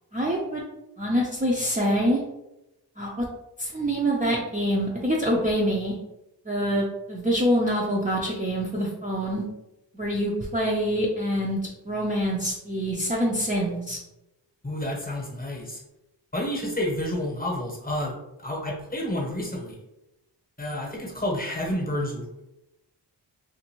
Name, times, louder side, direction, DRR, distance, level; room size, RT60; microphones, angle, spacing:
voice 1, 0.1-0.6 1.0-2.2 3.0-3.2 3.6-5.9 6.5-9.4 9.9-11.6 11.8-14.0, equal, 20° right, -4 dB, 0.5 m, -25 dB
voice 2, 14.6-15.8 16.3-18.1 18.4-19.8 20.6-22.3, left 1 dB, 20° left, -2 dB, 0.9 m, -29 dB
2.6 x 2.5 x 2.9 m, 0.90 s
cardioid pair, 55°, 44 cm